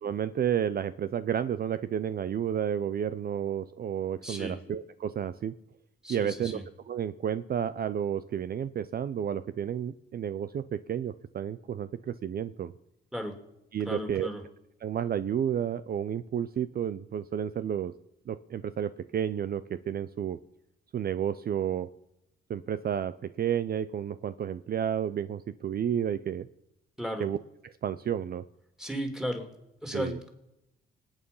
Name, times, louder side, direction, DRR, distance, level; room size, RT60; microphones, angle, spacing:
voice 1, 0.0-5.5 6.1-6.6 6.9-12.7 13.7-14.3 14.8-17.9 18.3-20.4 20.9-21.9 22.5-26.5 27.2-27.4 27.8-28.4 29.9-30.2, right 9 dB, 50° right, 14 dB, 0.6 m, -31 dB
voice 2, 4.2-4.6 6.0-6.6 13.1-13.4 13.8-14.4 27.0-27.3 28.8-29.5 29.8-30.3, equal, 5° right, 5 dB, 3.1 m, -35 dB
26.0 x 9.0 x 5.6 m, 0.89 s
cardioid pair, 90°, 20 cm